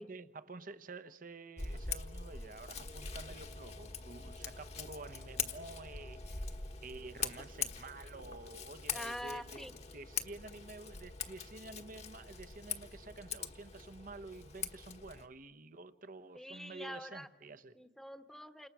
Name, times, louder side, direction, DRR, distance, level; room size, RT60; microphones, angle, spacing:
voice 1, 0.0-6.6 6.8-17.8, right 3 dB, 50° right, 12 dB, 1.1 m, -50 dB
Scissors, 1.6-15.3, left 6 dB, 35° left, 1.3 m, -43 dB
voice 2, 8.9-9.7 16.3-17.3 17.7-18.7, equal, ahead, 9 dB, 1.2 m, -45 dB
29.0 x 27.0 x 6.1 m, 1.1 s
head